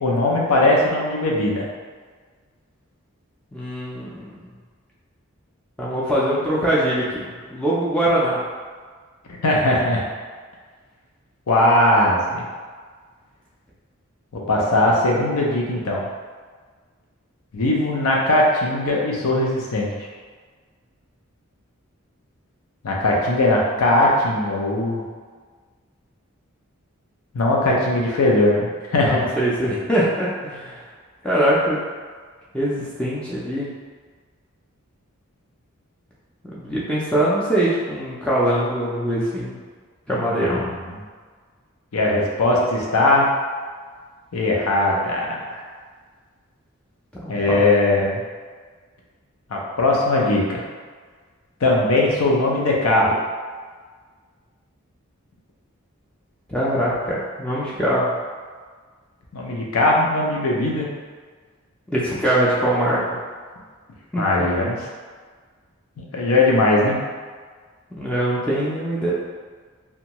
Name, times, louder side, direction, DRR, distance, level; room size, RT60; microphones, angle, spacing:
voice 1, 0.0-1.6 9.3-10.0 11.5-12.4 14.3-16.1 17.5-20.1 22.8-25.0 27.3-29.3 40.1-40.7 41.9-43.3 44.3-45.6 47.3-48.2 49.5-50.6 51.6-53.2 59.3-60.9 64.2-64.8 66.0-67.0, left 2 dB, 85° left, -2 dB, 0.6 m, -19 dB
voice 2, 3.5-4.5 5.8-8.4 29.0-30.9 31.2-31.8 32.5-33.7 36.5-39.6 40.1-40.7 47.2-47.6 56.5-58.1 61.9-63.2 64.1-64.2 68.0-69.1, right 1 dB, 5° left, -8 dB, 0.3 m, -22 dB
2.6 x 2.2 x 2.9 m, 1.5 s
head